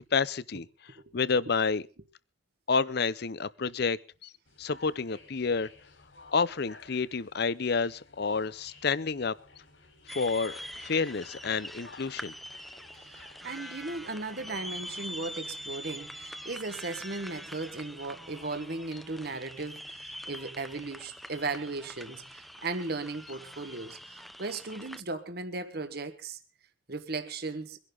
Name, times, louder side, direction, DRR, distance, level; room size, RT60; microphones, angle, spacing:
voice 1, 0.1-0.7 1.1-1.8 2.7-4.3 4.6-5.7 6.3-9.3 10.1-12.3, left 5 dB, 55° left, 0.6 m, -29 dB
sound 1, 4.5-20.9, left 3 dB, 70° left, 4.4 m, -57 dB
sound 2, 10.1-25.0, equal, ahead, 0.6 m, -44 dB
voice 2, 13.1-26.4 26.9-27.8, right 3 dB, 50° right, 1.4 m, -37 dB
24.0 x 11.0 x 3.8 m
head